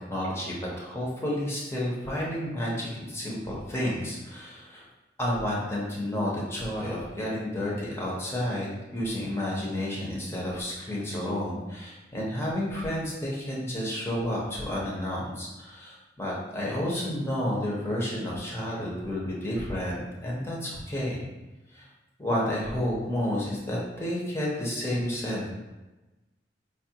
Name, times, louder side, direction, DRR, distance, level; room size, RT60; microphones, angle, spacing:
voice 1, 0.1-4.9 5.2-21.2 21.7-21.9 22.2-25.5, left 1 dB, 15° left, -5 dB, 0.8 m, -31 dB
4.9 x 2.5 x 2.8 m, 1.1 s
head